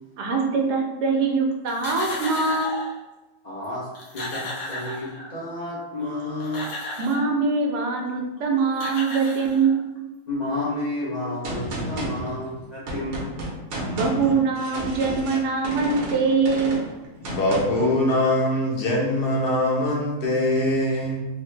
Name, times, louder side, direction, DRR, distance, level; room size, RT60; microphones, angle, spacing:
voice 1, 0.2-2.8 7.0-10.1 13.9-16.8, right 4 dB, 90° right, 1 dB, 1.2 m, -23 dB
sound 1, 1.7-3.0 3.6-3.7 3.9-5.5 6.2-7.3 8.4-8.5 8.7-10.0, left 1 dB, 70° left, 1.1 m, -34 dB
voice 2, 3.4-3.8 4.1-6.7 10.3-13.3, left 1 dB, 45° left, -7 dB, 0.6 m, -31 dB
Gunshot gunfire, 11.4-17.9, right 1 dB, 65° right, 1.2 m, -32 dB
voice 3, 17.2-21.3, left 1 dB, 90° left, -3 dB, 1.4 m, -22 dB
3.4 x 2.0 x 3.1 m, 1.1 s
omnidirectional pair, 1.7 m